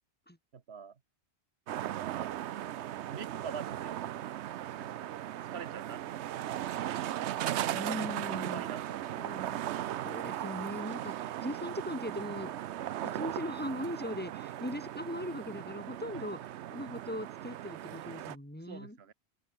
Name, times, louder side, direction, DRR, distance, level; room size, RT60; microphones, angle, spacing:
voice 1, 0.5-1.0 2.2-2.7 3.1-4.0 4.8-5.1 5.5-6.0 8.5-9.5 16.1-16.3 18.6-19.1, right 6 dB, 70° right, 1.4 m, -45 dB
sound 1, 1.7-18.4, right 12 dB, 85° right, 0.9 m, -37 dB
voice 2, 7.7-8.6 9.2-9.6 10.0-12.6 13.0-16.4 16.7-19.0, equal, 10° left, 4.0 m, -39 dB
open air
omnidirectional pair, 1.1 m